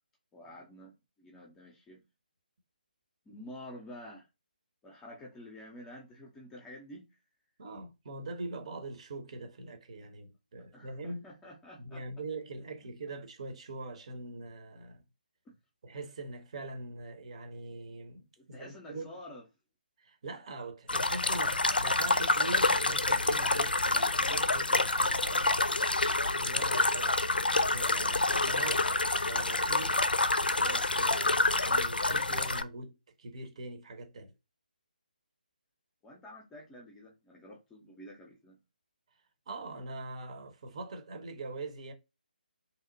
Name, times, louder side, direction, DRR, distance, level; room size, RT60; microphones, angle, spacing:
voice 1, 0.3-2.0 3.3-4.3 4.8-7.2 10.7-12.0 15.5-15.6 18.4-19.4 36.0-38.6, left 1 dB, 10° left, 0.6 m, -49 dB
voice 2, 7.6-11.2 11.8-15.0 15.8-19.1 20.0-25.9 26.2-28.9 29.2-30.1 30.4-34.3 39.5-41.9, right 2 dB, 40° right, 0.8 m, -43 dB
sound 1, 20.9-32.6, left 2 dB, 75° left, 0.4 m, -27 dB
2.8 x 2.1 x 2.6 m
figure-of-eight pair, 145°, 5 cm